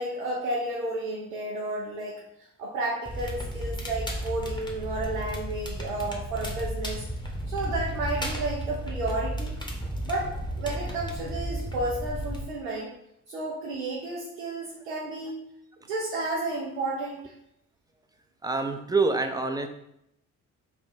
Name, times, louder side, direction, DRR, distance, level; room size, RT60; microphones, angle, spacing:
voice 1, 0.0-7.1 7.5-9.6 10.0-10.3 10.6-12.9 13.3-15.4 15.9-17.3, right 2 dB, 90° right, -4 dB, 0.7 m, -32 dB
Crackle, 3.1-12.4, equal, 10° left, 1.0 m, -33 dB
voice 2, 18.4-19.7, right 3 dB, 10° right, 5 dB, 0.4 m, -26 dB
3.4 x 2.3 x 4.3 m, 0.79 s
hypercardioid pair, 50°, 40 cm